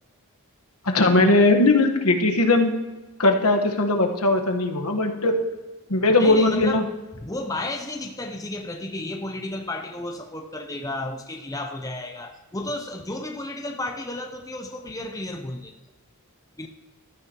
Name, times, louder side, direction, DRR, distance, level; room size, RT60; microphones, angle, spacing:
voice 1, 0.8-2.7 3.2-5.4 5.9-6.8, left 2 dB, 80° left, 3 dB, 1.3 m, -19 dB
voice 2, 6.2-6.8 7.2-15.7 16.6-16.7, left 1 dB, 15° left, 4 dB, 0.6 m, -32 dB
15.0 x 13.0 x 2.9 m, 1.2 s
head